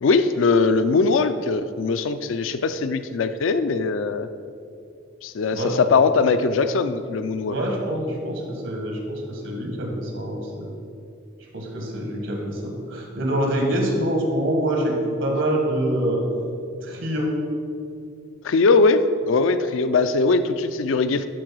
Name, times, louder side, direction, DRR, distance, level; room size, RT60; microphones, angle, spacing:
voice 1, 0.0-4.3 5.2-7.6 18.4-21.3, left 4 dB, 80° left, 11 dB, 0.4 m, -20 dB
voice 2, 7.4-10.7 11.5-16.2 16.8-17.3, right 1 dB, 80° right, 1 dB, 1.8 m, -25 dB
11.5 x 3.9 x 6.1 m, 2.4 s
head